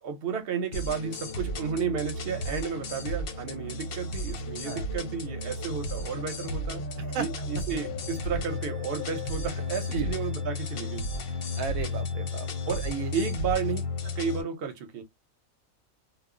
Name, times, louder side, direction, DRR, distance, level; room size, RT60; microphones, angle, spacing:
voice 1, 0.0-6.8 7.1-11.1 12.7-12.9 13.1-15.0, right 6 dB, 50° right, 0.8 m, -32 dB
sound 1, 0.7-14.4, left 2 dB, 55° left, 0.7 m, -33 dB
Wind instrument woodwind instrument, 8.1-12.9, right 3 dB, ahead, 0.6 m, -55 dB
voice 2, 11.6-12.5 12.8-13.1, right 6 dB, 80° right, 1.0 m, -34 dB
2.3 x 2.0 x 3.6 m
omnidirectional pair, 1.4 m